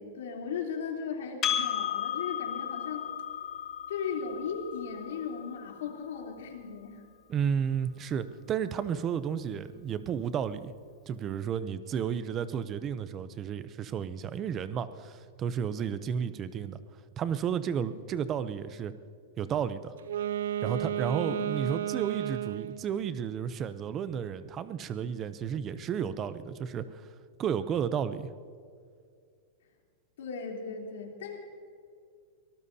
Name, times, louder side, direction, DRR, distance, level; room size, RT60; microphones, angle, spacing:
voice 1, 0.0-3.0 3.9-7.0 21.2-21.6 30.2-31.4, left 6 dB, 75° left, 0 dB, 3.3 m, -37 dB
Percussion, 1.4-6.2, left 9 dB, 20° left, 1.2 m, -34 dB
voice 2, 7.3-10.7 11.1-16.8 17.2-18.9 19.4-19.9 20.6-27.1 27.4-28.3, right 8 dB, 20° right, 13 dB, 0.5 m, -32 dB
Wind instrument woodwind instrument, 20.0-22.9, right 10 dB, 85° right, 0.4 m, -32 dB
24.0 x 19.0 x 2.8 m, 2.3 s
supercardioid pair, 180°, 0 cm